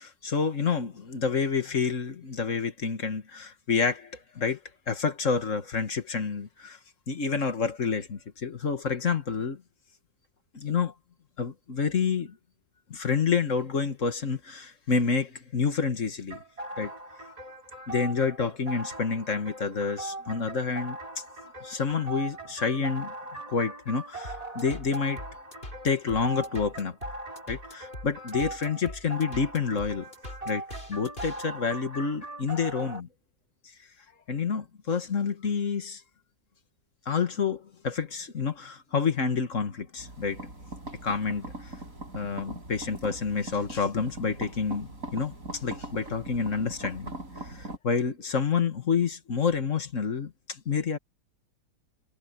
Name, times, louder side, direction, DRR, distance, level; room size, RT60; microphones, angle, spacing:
voice 1, 0.0-4.6 4.9-6.8 7.1-9.6 10.5-10.9 11.4-12.3 12.9-16.4 16.8-16.9 17.9-21.0 21.6-23.1 23.5-25.2 25.8-27.0 27.5-30.1 30.5-33.1 34.3-36.0 37.1-40.4 41.0-41.5 42.1-47.1 47.4-51.0, left 5 dB, 50° left, 2.0 m, -28 dB
sound 1, 16.3-33.0, right 2 dB, 20° right, 4.1 m, -40 dB
sound 2, 24.2-31.5, left 1 dB, 35° left, 6.3 m, -42 dB
sound 3, 40.0-47.8, right 1 dB, 55° right, 7.6 m, -41 dB
omnidirectional pair, 1.8 m